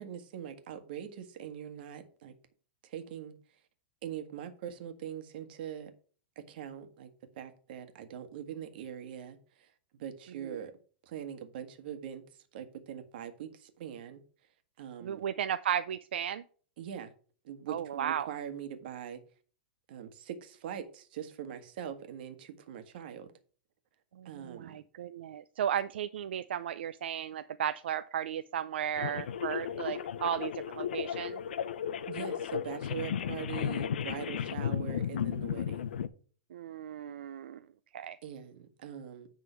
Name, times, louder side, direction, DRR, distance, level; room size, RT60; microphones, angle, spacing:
voice 1, 0.0-2.3 2.8-3.3 4.0-5.9 6.3-7.1 7.4-9.7 10.0-10.7 11.1-12.2 12.5-14.2 14.8-15.3 16.8-17.1 17.4-19.2 19.9-23.3 24.2-24.8 32.1-35.9 38.2-39.3, right 9 dB, 65° right, 1.5 m, -42 dB
voice 2, 10.3-10.7 15.0-16.4 17.7-18.3 24.2-31.4 36.5-37.6 37.9-38.2, right 9 dB, 85° right, 0.4 m, -35 dB
sound 1, 29.0-36.1, left 9 dB, 90° left, 0.7 m, -34 dB
9.9 x 3.8 x 6.2 m
supercardioid pair, 145°, 6 cm